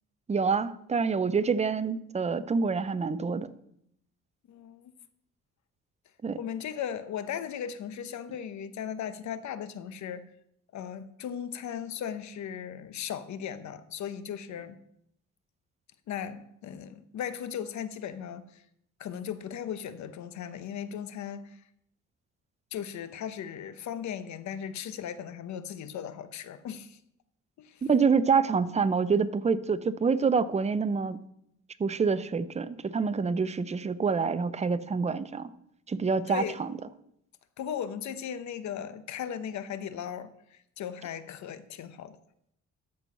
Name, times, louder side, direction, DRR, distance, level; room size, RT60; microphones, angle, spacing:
voice 1, 0.3-3.5 6.2-6.4 27.9-31.2 31.8-35.5 35.9-36.7, right 5 dB, 20° right, 14 dB, 0.6 m, -27 dB
voice 2, 4.5-4.9 6.4-10.2 10.7-14.8 16.1-18.4 19.0-21.6 22.7-27.0 27.6-27.8 36.3-36.6 37.6-42.2, left 8 dB, 70° left, 12 dB, 0.9 m, -37 dB
13.5 x 4.6 x 5.5 m, 0.75 s
cardioid pair, 90°, 30 cm